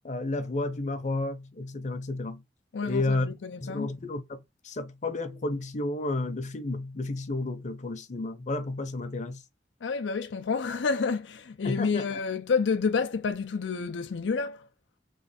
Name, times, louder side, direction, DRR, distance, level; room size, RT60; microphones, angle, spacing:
voice 1, 0.0-2.4 2.8-3.3 3.6-9.4 11.6-12.2, left 2 dB, 40° left, 0.7 m, -32 dB
voice 2, 2.7-3.9 9.8-14.7, left 5 dB, 85° left, 0.5 m, -29 dB
3.3 x 3.3 x 4.1 m
head